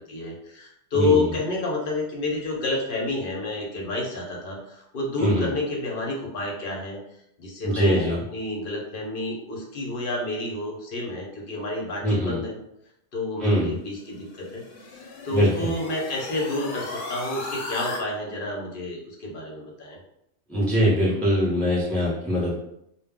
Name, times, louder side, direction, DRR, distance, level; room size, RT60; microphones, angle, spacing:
voice 1, 0.0-7.0 7.4-12.6 13.1-20.0, left 2 dB, 55° left, -1 dB, 0.7 m, -29 dB
voice 2, 0.9-1.2 5.2-5.5 7.6-8.2 12.0-12.4 13.4-13.7 15.3-15.7 20.5-22.5, equal, ahead, -6 dB, 0.6 m, -22 dB
sound 1, 14.0-18.0, left 3 dB, 80° left, 0.9 m, -36 dB
2.2 x 2.1 x 3.5 m, 0.79 s
omnidirectional pair, 1.2 m